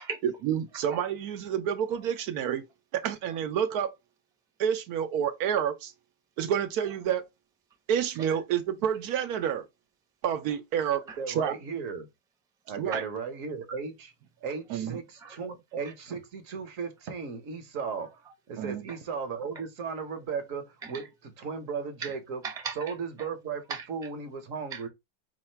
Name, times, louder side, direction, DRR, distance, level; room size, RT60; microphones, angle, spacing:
voice 1, 0.2-2.7 2.9-3.9 4.6-5.9 6.4-7.2 7.9-9.6 10.2-11.5 12.8-13.0 14.7-15.0 18.6-18.9, right 9 dB, 80° right, 1.2 m, -29 dB
voice 2, 11.2-12.1 12.7-14.1 14.4-18.2 18.5-21.1 21.4-22.4 22.8-24.9, right 5 dB, 65° right, 1.2 m, -36 dB
voice 3, 22.4-23.3 23.7-23.9 24.7-24.9, right 5 dB, 5° right, 0.6 m, -38 dB
4.6 x 2.4 x 4.4 m
omnidirectional pair, 1.6 m